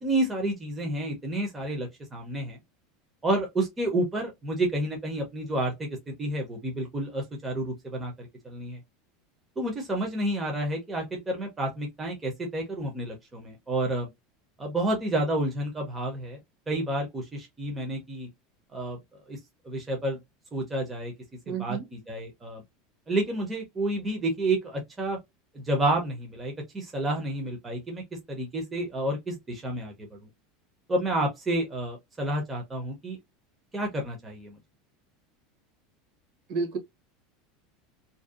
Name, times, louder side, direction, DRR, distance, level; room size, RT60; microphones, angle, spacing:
voice 1, 0.0-2.6 3.2-5.9 6.2-8.8 9.6-14.1 14.6-16.4 16.7-18.3 18.7-19.0 19.3-19.4 19.6-20.2 20.5-21.1 21.5-22.6 23.1-25.2 25.5-28.0 28.3-30.2 30.9-33.2 33.7-34.6, right 1 dB, 10° right, 0.5 m, -30 dB
voice 2, 21.5-21.8 36.5-36.8, right 5 dB, 50° right, 0.9 m, -30 dB
2.5 x 2.1 x 2.3 m
supercardioid pair, 175°, 0 cm